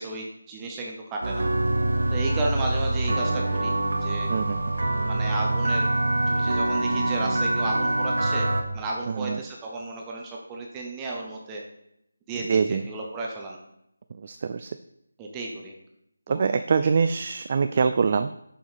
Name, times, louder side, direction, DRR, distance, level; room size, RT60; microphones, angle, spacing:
voice 1, 0.0-1.5 2.1-3.7 4.0-4.3 5.0-5.9 6.3-8.5 8.7-11.6 12.3-13.6 15.2-15.7 16.3-16.6 17.7-17.8, right 2 dB, 15° right, -1 dB, 0.8 m, -33 dB
sound 1, 1.2-8.6, right 2 dB, 65° right, 1.3 m, -25 dB
voice 2, 4.3-4.8 9.1-9.4 12.3-12.9 14.1-14.8 16.3-18.3, right 5 dB, 40° right, 10 dB, 0.3 m, -24 dB
6.5 x 5.7 x 5.0 m, 0.79 s
figure-of-eight pair, 160°, 0 cm